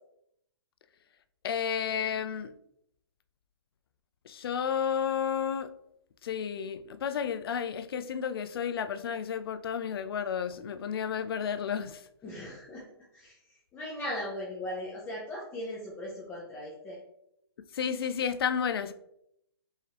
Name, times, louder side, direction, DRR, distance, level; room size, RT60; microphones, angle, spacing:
voice 1, 1.4-2.5 4.3-5.7 6.2-12.0 17.7-18.9, left 7 dB, 65° left, 12 dB, 0.4 m, -32 dB
voice 2, 12.2-12.8 13.1-17.0, left 1 dB, 15° left, -5 dB, 0.7 m, -38 dB
4.7 x 2.8 x 2.9 m, 0.77 s
hypercardioid pair, 140°, 13 cm